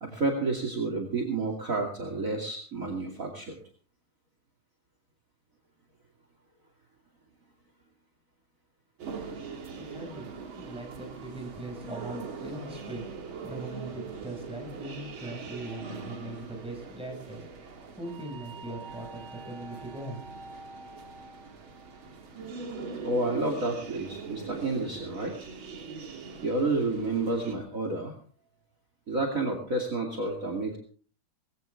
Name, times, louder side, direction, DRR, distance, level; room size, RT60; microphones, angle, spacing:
voice 1, 0.0-3.5 23.0-25.3 26.4-28.1 29.1-30.8, right 2 dB, 40° right, 3 dB, 2.9 m, -30 dB
sound 1, 9.0-27.6, right 4 dB, 75° right, 2.9 m, -42 dB
voice 2, 9.4-10.3 10.5-13.1 13.4-17.4 18.0-20.2, right 2 dB, ahead, 3 dB, 5.7 m, -40 dB
20.5 x 16.5 x 3.5 m, 0.40 s
omnidirectional pair, 2.3 m